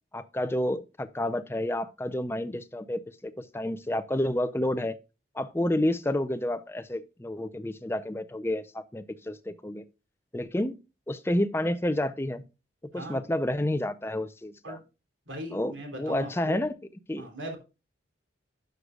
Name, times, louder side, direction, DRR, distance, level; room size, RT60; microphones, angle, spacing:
voice 1, 0.1-5.0 5.3-9.8 10.3-10.8 11.1-12.4 12.9-14.8 15.5-16.7 17.1-17.3, left 1 dB, 15° left, 0.5 m, -30 dB
voice 2, 15.3-16.6 17.2-17.6, right 1 dB, 85° right, 3.2 m, -39 dB
11.0 x 6.6 x 2.3 m
head